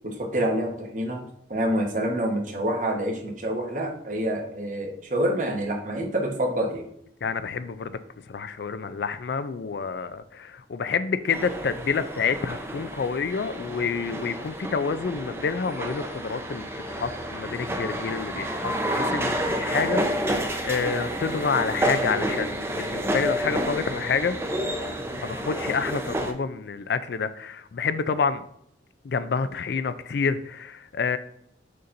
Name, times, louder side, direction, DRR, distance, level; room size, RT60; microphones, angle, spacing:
voice 1, 0.0-1.2 1.5-6.8, right 1 dB, 45° right, 2 dB, 1.1 m, -27 dB
voice 2, 7.2-8.0 8.3-24.4 25.2-28.4 29.0-31.2, left 5 dB, 60° left, 12 dB, 0.4 m, -28 dB
sound 1, 11.3-26.3, equal, 15° right, 0.5 m, -30 dB
6.6 x 5.6 x 2.6 m, 0.70 s
head